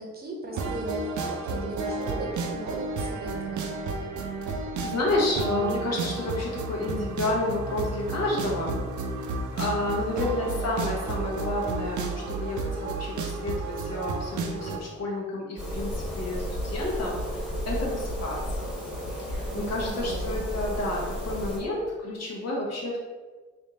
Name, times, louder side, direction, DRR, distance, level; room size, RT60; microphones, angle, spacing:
voice 1, 0.0-3.6 10.0-10.5 19.5-20.4, right 1 dB, 30° right, -1 dB, 0.8 m, -38 dB
sound 1, 0.5-14.8, right 3 dB, 85° right, 0.6 m, -32 dB
voice 2, 4.8-8.8 9.1-18.8 19.1-23.0, left 2 dB, 60° left, -3 dB, 1.0 m, -30 dB
sound 2, 15.6-21.6, equal, 5° right, 1.2 m, -33 dB
3.3 x 2.7 x 4.0 m, 1.4 s
cardioid pair, 125°, 29 cm